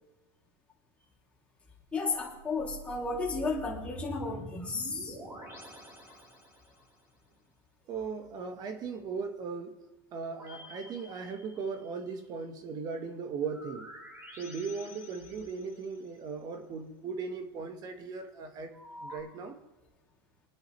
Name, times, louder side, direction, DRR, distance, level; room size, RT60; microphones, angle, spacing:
voice 1, 1.9-5.2, left 4 dB, 10° left, -3 dB, 2.9 m, -33 dB
sound 1, 1.9-6.9 10.2-12.0 13.4-16.0 18.7-19.2, right 1 dB, 15° right, 4.0 m, -48 dB
voice 2, 7.9-9.8 10.1-13.9 14.4-18.7 19.0-19.6, right 5 dB, 30° right, 7 dB, 1.4 m, -38 dB
26.5 x 9.8 x 3.3 m, 1.1 s
supercardioid pair, 140°, 12 cm